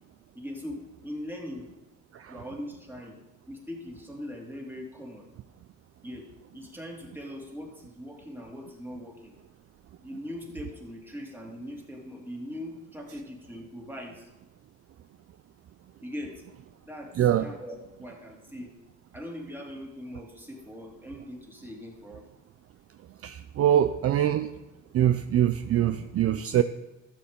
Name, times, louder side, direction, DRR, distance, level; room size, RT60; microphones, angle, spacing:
voice 1, 0.3-1.7 2.3-3.2 3.5-5.3 6.0-6.3 6.5-9.3 10.0-14.3 16.0-16.4 16.9-17.1 17.4-18.7 19.1-22.2, left 1 dB, 5° right, 0 dB, 2.2 m, -40 dB
voice 2, 23.2-24.5 24.9-26.6, right 11 dB, 50° right, 10 dB, 0.4 m, -23 dB
12.5 x 7.0 x 3.6 m, 1.0 s
cardioid pair, 90°, 30 cm